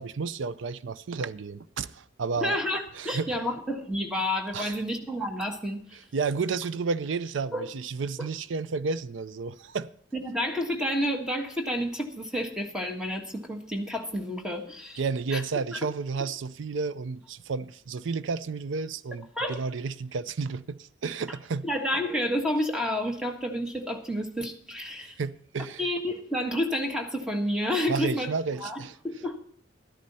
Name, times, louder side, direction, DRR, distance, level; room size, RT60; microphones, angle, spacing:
voice 1, 0.0-2.6 2.9-3.4 4.5-4.8 5.9-9.9 15.0-21.7 25.0-25.8 27.9-29.0, right 4 dB, 75° right, 0.5 m, -32 dB
voice 2, 2.4-6.0 7.5-7.7 10.1-15.0 15.3-15.4 19.3-19.6 21.6-25.2 25.8-28.3 28.6-28.8 29.0-29.4, equal, 5° right, 1.5 m, -30 dB
13.0 x 11.0 x 4.2 m
head